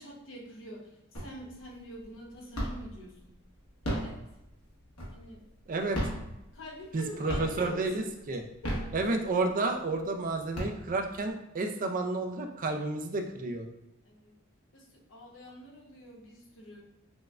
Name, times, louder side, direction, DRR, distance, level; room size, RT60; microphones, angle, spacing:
voice 1, 0.0-3.4 3.8-4.2 5.1-5.5 6.5-8.0 8.6-8.9 14.0-14.3 14.7-16.8, equal, 65° left, -2 dB, 1.0 m, -46 dB
sound 1, 1.1-1.6 2.0-3.0 3.6-5.4 5.8-7.0 7.3-7.8 8.4-9.5 10.0-10.1 10.4-11.3, equal, 90° left, 1.2 m, -35 dB
voice 2, 5.7-6.0 6.9-8.4 8.9-13.7, right 3 dB, 40° right, 5 dB, 0.4 m, -31 dB
6.1 x 2.2 x 2.4 m, 0.89 s
head